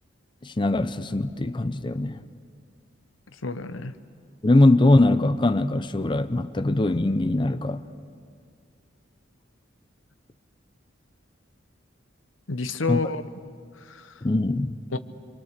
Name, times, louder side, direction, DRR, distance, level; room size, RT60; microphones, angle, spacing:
voice 1, 0.4-2.2 4.4-7.9 12.9-13.0 14.2-14.8, left 2 dB, 25° left, 0.6 m, -21 dB
voice 2, 3.4-3.9 12.5-13.2 13.8-14.1 14.9-15.0, left 3 dB, 90° left, 0.9 m, -29 dB
26.5 x 24.0 x 6.7 m
head